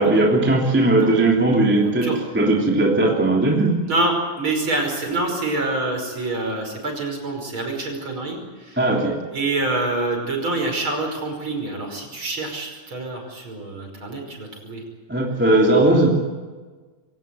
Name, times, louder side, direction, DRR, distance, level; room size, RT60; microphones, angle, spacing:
voice 1, 0.0-2.1 2.3-3.7 8.8-9.1 15.1-16.1, right 2 dB, 5° right, -2 dB, 2.6 m, -18 dB
voice 2, 3.9-8.8 9.3-14.8, right 2 dB, 35° right, 2 dB, 5.9 m, -26 dB
24.0 x 18.0 x 9.6 m, 1.3 s
omnidirectional pair, 4.1 m